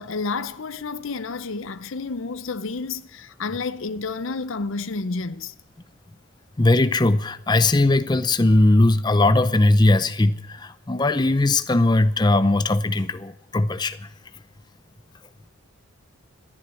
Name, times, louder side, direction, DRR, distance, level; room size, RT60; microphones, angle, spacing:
voice 1, 0.0-5.5, left 4 dB, 65° left, 0.6 m, -30 dB
voice 2, 6.6-14.1, left 2 dB, 20° left, 0.5 m, -19 dB
14.0 x 9.9 x 9.5 m
head